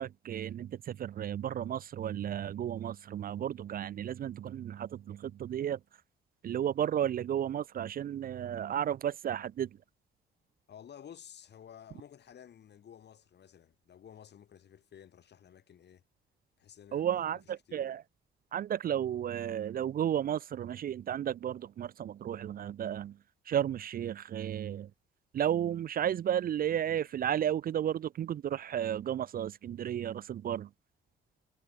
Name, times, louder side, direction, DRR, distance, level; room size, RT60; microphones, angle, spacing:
voice 1, 0.0-5.8 6.4-9.7 16.9-18.0 18.5-23.1 23.5-24.9 25.3-30.7, right 10 dB, 45° right, 0.4 m, -33 dB
voice 2, 10.7-16.0 16.6-17.9, left 9 dB, 60° left, 3.1 m, -53 dB
cardioid pair, 90°, 20 cm